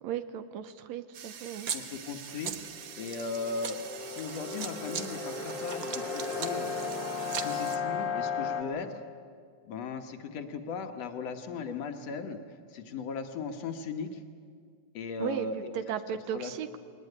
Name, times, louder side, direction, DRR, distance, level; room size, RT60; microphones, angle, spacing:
voice 1, 0.0-1.7 15.2-15.5 15.8-16.8, right 9 dB, 75° right, 11 dB, 1.9 m, -35 dB
sound 1, 1.1-7.8, right 8 dB, 55° right, 1.3 m, -40 dB
voice 2, 1.7-2.5 3.0-6.7 7.4-9.0 9.7-14.2 14.9-15.8 16.3-16.5, left 4 dB, 65° left, 6 dB, 2.2 m, -37 dB
sound 2, 2.7-8.6, left 5 dB, 45° left, 1.9 m, -35 dB
21.0 x 19.0 x 9.8 m, 2.2 s
omnidirectional pair, 3.4 m